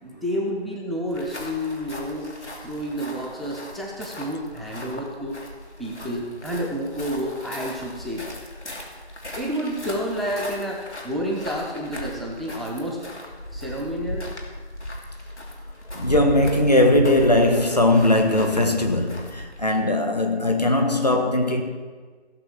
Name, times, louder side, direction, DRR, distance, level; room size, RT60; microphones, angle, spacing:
voice 1, 0.0-2.3 2.6-5.4 5.8-8.3 9.4-13.0 13.5-14.3, equal, ahead, -2 dB, 0.7 m, -30 dB
sound 1, 1.0-19.9, left 1 dB, 90° left, 2.9 m, -37 dB
voice 2, 15.9-21.6, left 1 dB, 40° left, 4 dB, 1.4 m, -19 dB
16.5 x 7.2 x 5.9 m, 1.5 s
figure-of-eight pair, 180°, 33 cm